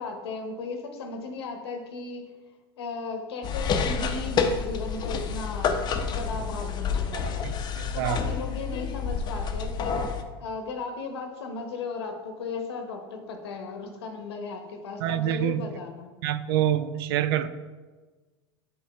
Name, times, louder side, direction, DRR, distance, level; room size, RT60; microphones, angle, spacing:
voice 1, 0.0-2.3 2.8-7.5 7.9-10.0 10.4-16.1, left 4 dB, 75° left, 0.8 m, -36 dB
sound 1, 3.4-10.2, left 6 dB, 30° left, 0.6 m, -29 dB
voice 2, 7.2-8.2 15.0-15.6 16.2-17.5, right 12 dB, 65° right, 0.4 m, -27 dB
6.3 x 4.6 x 3.4 m
hypercardioid pair, 95°, 14 cm